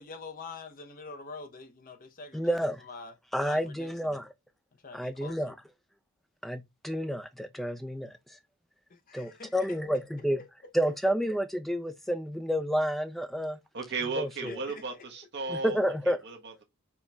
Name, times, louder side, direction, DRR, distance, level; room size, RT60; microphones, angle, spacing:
voice 1, 0.0-3.1 3.4-4.2 4.7-5.6 8.9-9.8 10.4-10.7 14.5-15.1 15.4-15.5, left 3 dB, 40° left, 0.7 m, -46 dB
voice 2, 2.3-2.8 3.3-4.3 4.9-5.5 6.4-8.4 9.1-10.4 10.7-13.6 14.2-14.6 15.5-16.2, equal, ahead, 0.4 m, -30 dB
voice 3, 13.7-15.8 16.1-16.6, right 3 dB, 50° right, 1.2 m, -35 dB
4.5 x 3.0 x 3.3 m
head